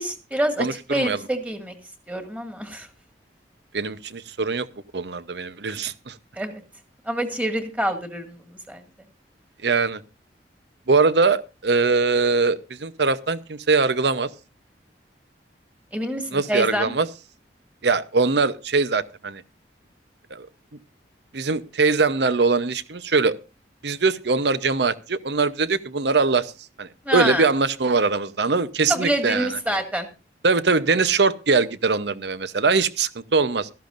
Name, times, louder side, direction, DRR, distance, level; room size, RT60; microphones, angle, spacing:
voice 1, 0.0-1.7 2.1-2.9 6.4-6.6 7.1-8.8 15.9-16.9 27.1-27.5 28.9-30.1, right 1 dB, 10° right, 5 dB, 1.9 m, -26 dB
voice 2, 0.6-1.2 3.7-4.7 4.9-6.2 9.6-10.0 10.9-14.3 16.3-17.1 17.8-19.4 20.3-20.5 21.3-23.4 23.8-26.5 26.8-29.5 30.4-33.7, right 4 dB, 70° right, 15 dB, 0.8 m, -22 dB
17.0 x 13.5 x 2.5 m, 0.29 s
head